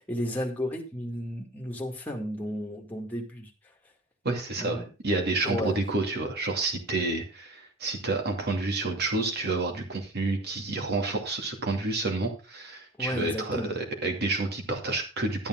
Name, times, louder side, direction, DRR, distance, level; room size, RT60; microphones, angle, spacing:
voice 1, 0.0-3.5 4.6-4.9 5.4-5.8 13.0-13.7, left 1 dB, 10° left, 0 dB, 2.0 m, -33 dB
voice 2, 4.2-15.5, right 2 dB, 50° right, 4 dB, 2.4 m, -29 dB
11.5 x 8.8 x 3.8 m, 0.32 s
head